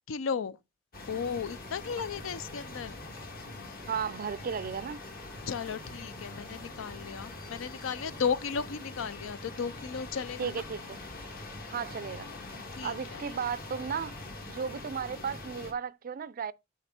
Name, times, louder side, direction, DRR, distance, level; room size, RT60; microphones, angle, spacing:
voice 1, 0.1-0.6 1.1-3.0 5.5-10.7 12.8-13.3, left 6 dB, 70° left, 0.5 m, -35 dB
sound 1, 0.9-15.7, left 2 dB, 50° left, 1.6 m, -43 dB
voice 2, 3.9-5.0 10.4-11.0 11.7-12.3 12.8-14.1 14.5-16.5, right 6 dB, 45° right, 0.4 m, -34 dB
6.6 x 5.2 x 4.2 m
head